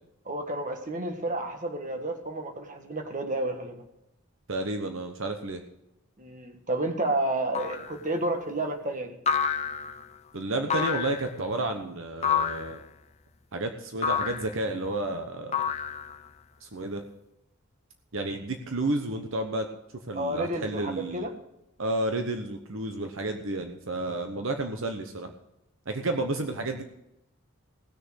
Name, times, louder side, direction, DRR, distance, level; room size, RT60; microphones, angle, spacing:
voice 1, 0.2-3.8 6.2-9.1 20.1-21.3, right 1 dB, 35° right, 5 dB, 1.7 m, -31 dB
voice 2, 4.5-5.6 10.3-12.8 13.5-15.6 16.6-17.0 18.1-19.7 20.1-21.3 21.8-25.3 25.9-26.8, right 2 dB, 65° right, 5 dB, 1.0 m, -31 dB
sound 1, 7.6-8.0 9.3-10.0 10.7-11.3 12.2-12.8 14.0-14.5 15.5-16.3, left 6 dB, 30° left, 0.5 m, -28 dB
18.0 x 6.7 x 6.3 m, 0.87 s
head